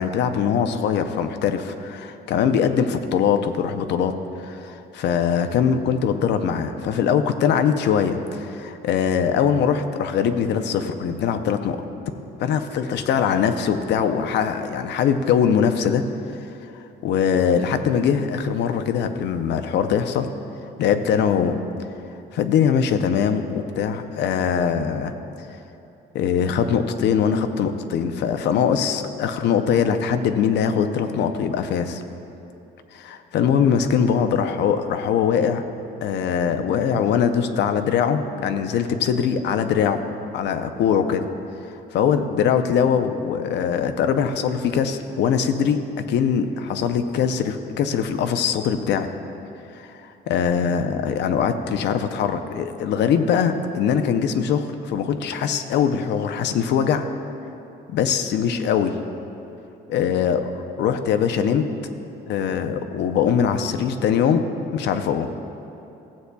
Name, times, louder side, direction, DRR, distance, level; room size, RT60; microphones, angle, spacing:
voice 1, 0.0-4.1 4.4-11.8 12.4-16.0 16.4-16.5 17.0-20.3 20.8-21.6 22.3-25.1 26.1-32.0 32.9-35.6 36.0-40.0 40.3-41.3 41.9-49.1 49.7-50.0 50.3-57.1 57.9-59.0 59.9-60.4 60.8-61.7 62.3-64.4 64.7-65.3, left 7 dB, 75° left, 8 dB, 0.6 m, -22 dB
15.5 x 8.1 x 2.3 m, 2.9 s
cardioid pair, 170°, 18 cm